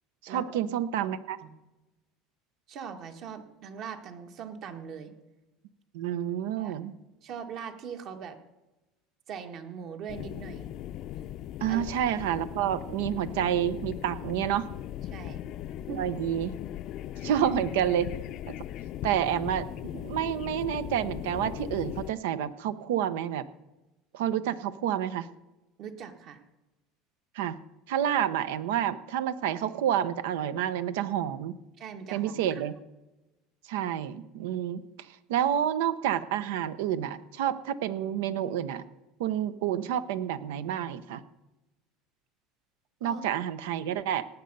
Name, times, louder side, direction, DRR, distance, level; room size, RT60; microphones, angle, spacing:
voice 1, 0.2-1.4 5.9-6.9 11.6-14.7 15.9-16.6 17.2-18.1 18.5-18.6 19.0-23.5 24.1-25.3 27.3-27.6 27.9-31.6 32.1-32.7 33.7-38.8 39.2-41.2 43.0-44.3, right 10 dB, 85° right, 14 dB, 0.8 m, -29 dB
voice 2, 2.7-5.1 6.6-6.8 7.2-8.4 9.3-10.7 11.7-11.9 15.1-15.4 15.9-16.0 25.8-26.4 31.8-32.7 43.0-43.2, right 7 dB, 50° right, 6 dB, 1.6 m, -41 dB
sound 1, 10.1-22.1, left 12 dB, 55° left, 0.5 m, -38 dB
18.0 x 8.1 x 5.4 m, 1.0 s
supercardioid pair, 120°, 0 cm